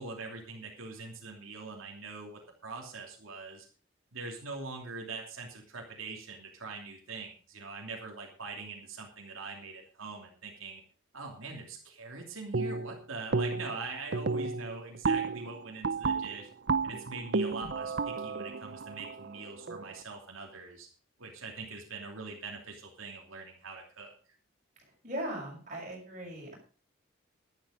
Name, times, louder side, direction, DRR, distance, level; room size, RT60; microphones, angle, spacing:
voice 1, 0.0-3.7 4.1-10.8 11.1-16.5 16.8-20.9 21.2-24.1, right 3 dB, 85° right, 0 dB, 2.8 m, -43 dB
sound 1, 12.5-13.0 13.3-13.8 14.1-19.9, right 4 dB, 55° right, 0.6 m, -32 dB
voice 2, 25.0-26.6, right 1 dB, 35° right, -2 dB, 6.6 m, -38 dB
12.0 x 11.5 x 5.2 m, 0.40 s
head